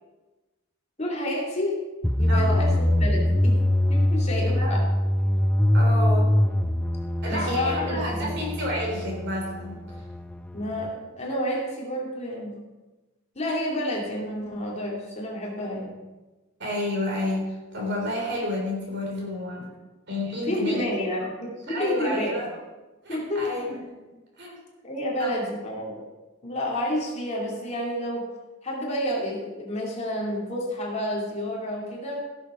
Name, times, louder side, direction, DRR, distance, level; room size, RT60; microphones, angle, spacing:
voice 1, 1.0-1.8 2.2-3.6 3.9-4.8 7.3-8.4 10.5-12.6 13.3-16.0 20.4-22.3 23.1-23.8 24.8-26.0 26.4-28.2 28.6-32.2, left 1 dB, 35° left, -3 dB, 2.9 m, -30 dB
sound 1, 2.0-10.9, left 1 dB, 5° left, 0.3 m, -23 dB
voice 2, 2.3-2.6 4.5-4.8 5.7-6.3 7.2-10.0 16.6-19.7 20.1-20.8 21.2-21.3 21.7-22.6 23.0-23.8 24.4-24.6 25.2-25.3, left 1 dB, 60° right, -1 dB, 3.6 m, -30 dB
16.0 x 7.2 x 5.1 m, 1.2 s
head